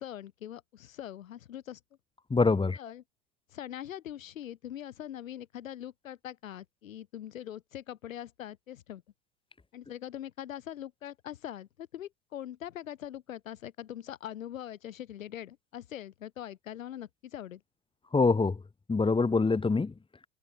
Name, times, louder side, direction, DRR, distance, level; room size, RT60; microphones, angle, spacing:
voice 1, 0.0-1.8 2.8-3.0 3.5-9.0 9.7-17.6, left 11 dB, 85° left, 3.6 m, -42 dB
voice 2, 2.3-2.8 18.1-18.6 18.9-19.9, left 4 dB, 15° left, 2.1 m, -25 dB
hypercardioid pair, 95°, 39 cm